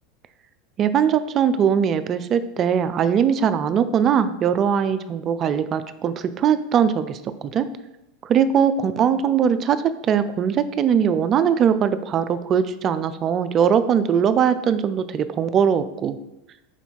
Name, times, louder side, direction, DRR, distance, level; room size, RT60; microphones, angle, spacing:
voice 1, 0.8-7.7 8.2-16.2, right 8 dB, 35° right, 12 dB, 0.3 m, -21 dB
4.3 x 2.7 x 4.4 m, 0.91 s
hypercardioid pair, 85°, 0 cm